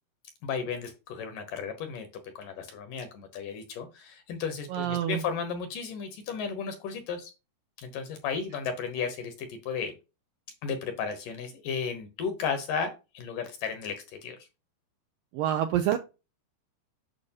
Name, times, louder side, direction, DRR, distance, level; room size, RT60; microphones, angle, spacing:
voice 1, 0.4-2.1 2.4-7.3 7.8-9.9 10.6-14.4, left 6 dB, 70° left, 2.2 m, -34 dB
voice 2, 4.7-5.2 15.3-16.0, right 11 dB, 85° right, 2.0 m, -27 dB
8.8 x 6.2 x 2.9 m
omnidirectional pair, 4.7 m